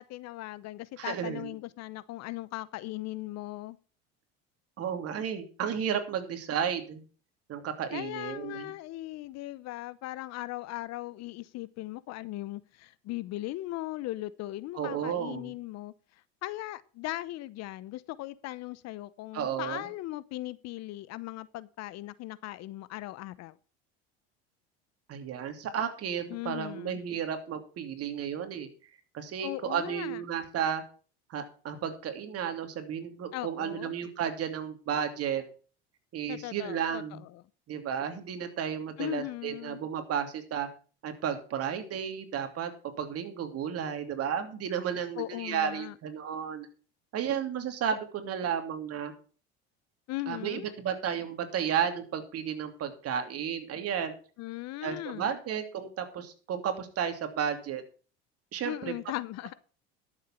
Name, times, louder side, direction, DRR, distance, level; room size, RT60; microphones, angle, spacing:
voice 1, 0.0-3.8 7.9-15.9 16.4-23.5 26.3-27.0 29.4-30.2 33.3-34.0 36.3-37.4 39.0-39.8 45.2-45.9 50.1-50.7 54.4-55.3 58.6-59.6, left 17 dB, 55° left, 18 dB, 0.8 m, -38 dB
voice 2, 1.0-1.5 4.8-7.0 7.5-8.7 14.8-15.5 19.3-19.9 25.1-28.7 29.1-30.8 31.3-35.4 36.1-37.2 37.7-40.7 41.0-42.7 43.0-46.7 47.1-49.1 50.3-54.1 54.8-57.8 58.5-58.9, right 8 dB, 50° right, 7 dB, 2.8 m, -33 dB
12.0 x 7.4 x 5.8 m, 0.39 s
hypercardioid pair, 85°, 31 cm